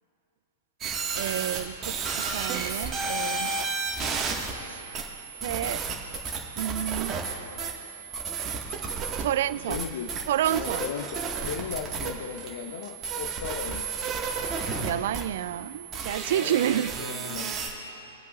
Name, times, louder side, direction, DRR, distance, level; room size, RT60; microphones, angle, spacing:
sound 1, 0.8-17.7, right 5 dB, 30° right, 1.8 m, -32 dB
voice 1, 1.1-3.5 4.5-4.9 5.4-5.8 6.6-7.2 9.2-9.9 10.3-10.8 14.8-17.0, right 12 dB, 60° right, 18 dB, 0.3 m, -29 dB
voice 2, 9.6-10.1 10.5-14.1 16.1-18.0, left 7 dB, 65° left, 6 dB, 0.7 m, -37 dB
24.5 x 8.3 x 2.6 m, 2.9 s
figure-of-eight pair, 100°, 0 cm